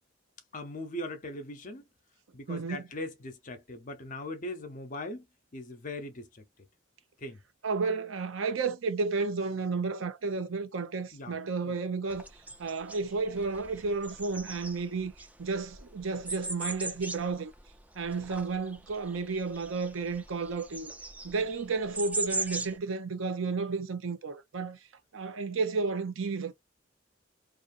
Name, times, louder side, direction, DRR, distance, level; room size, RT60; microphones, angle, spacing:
voice 1, 0.5-1.8 2.3-5.3 5.5-6.4 7.2-7.4 11.1-11.4 11.6-11.7, left 1 dB, 40° left, 0.7 m, -40 dB
voice 2, 2.5-2.8 7.6-12.3 12.6-15.1 15.4-17.5 18.0-20.9 21.2-24.8 25.1-26.5, right 4 dB, 85° right, 0.6 m, -32 dB
sound 1, 12.1-22.8, right 2 dB, 10° right, 0.3 m, -39 dB
2.5 x 2.5 x 2.4 m
head